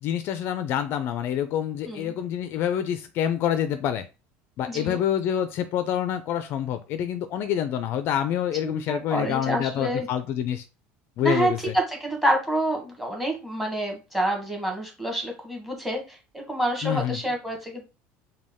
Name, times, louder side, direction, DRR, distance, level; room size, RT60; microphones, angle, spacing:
voice 1, 0.0-4.1 4.6-10.7 11.2-11.7 16.8-17.2, left 10 dB, 50° left, 10 dB, 0.4 m, -27 dB
voice 2, 4.6-5.0 8.6-10.1 11.2-17.8, right 1 dB, 5° right, 2 dB, 1.2 m, -28 dB
5.2 x 2.2 x 3.5 m, 0.29 s
cardioid pair, 145°, 5 cm